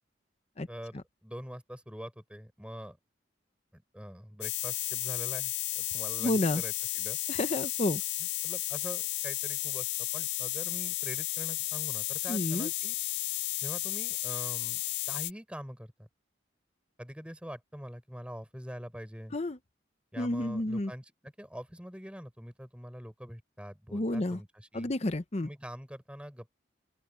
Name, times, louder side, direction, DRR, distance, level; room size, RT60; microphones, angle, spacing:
voice 1, 0.7-3.0 3.7-7.2 8.2-13.0 13.6-14.8 15.1-16.1 17.0-19.4 20.1-24.9 25.4-26.5, equal, 5° right, 5.9 m, -44 dB
sound 1, 4.4-15.3, left 18 dB, 65° left, 0.5 m, -33 dB
voice 2, 6.2-6.6 7.3-8.0 12.3-12.7 19.3-19.6 20.2-20.9 23.9-24.4 24.7-25.5, left 1 dB, 35° left, 0.8 m, -30 dB
open air
head